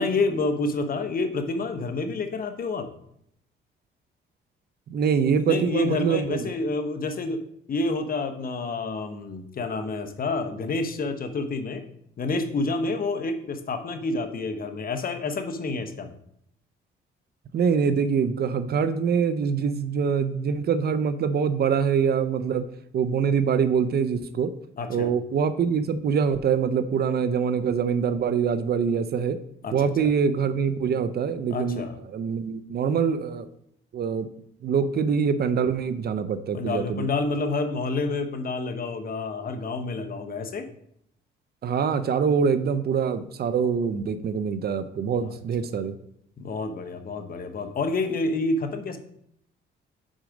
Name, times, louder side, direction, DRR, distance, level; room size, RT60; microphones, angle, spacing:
voice 1, 0.0-2.9 5.4-7.4 7.7-11.8 12.2-16.1 24.8-25.1 29.6-30.1 31.5-31.9 36.5-40.7 46.4-49.0, left 3 dB, 45° left, 7 dB, 1.0 m, -28 dB
voice 2, 4.9-6.5 17.5-22.6 22.9-24.5 24.9-29.4 29.7-31.8 32.1-33.5 33.9-34.3 34.6-37.1 41.6-46.0, right 6 dB, 50° right, 11 dB, 0.6 m, -24 dB
6.3 x 4.8 x 5.1 m, 0.71 s
cardioid pair, 90°, 20 cm